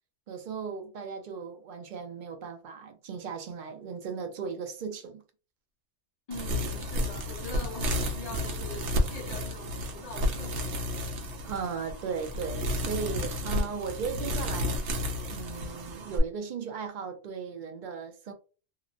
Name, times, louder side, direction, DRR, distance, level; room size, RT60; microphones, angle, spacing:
voice 1, 0.3-5.2 11.4-14.8 15.3-18.3, right 6 dB, 60° right, 0.5 m, -37 dB
voice 2, 6.3-10.8, left 3 dB, 45° left, 0.6 m, -43 dB
sound 1, 6.3-16.2, left 1 dB, 75° right, 0.9 m, -32 dB
2.9 x 2.0 x 2.4 m
omnidirectional pair, 1.2 m